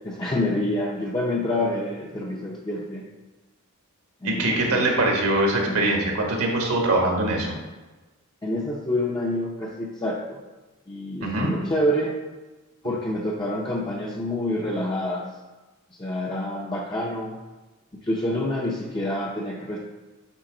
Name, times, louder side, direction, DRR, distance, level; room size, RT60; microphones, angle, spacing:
voice 1, 0.0-3.0 4.2-4.9 5.7-5.9 8.4-10.4 10.9-12.1 12.8-15.2 16.0-17.4 18.0-19.8, left 1 dB, 20° left, -3 dB, 0.6 m, -27 dB
voice 2, 4.2-7.6 11.2-11.5, right 2 dB, 75° right, 0 dB, 1.4 m, -23 dB
9.1 x 4.0 x 3.9 m, 1.2 s
head